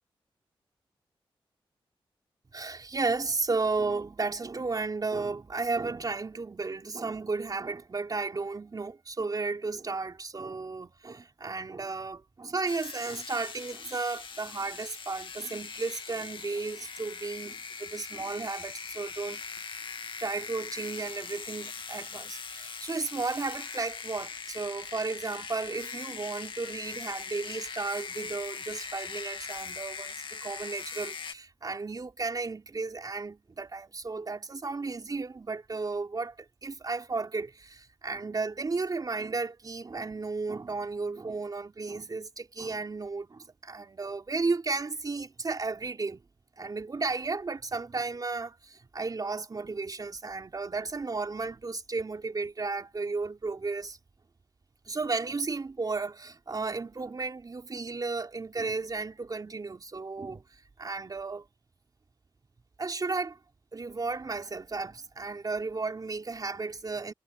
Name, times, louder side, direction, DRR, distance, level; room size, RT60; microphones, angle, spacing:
voice 1, 2.5-19.4 20.2-46.2 46.6-54.0 54.9-61.5 62.8-63.4 63.7-67.1, right 3 dB, 40° right, 3.9 m, -34 dB
sound 1, 12.7-31.3, left 5 dB, 60° left, 2.2 m, -41 dB
cardioid pair, 75°, 10 cm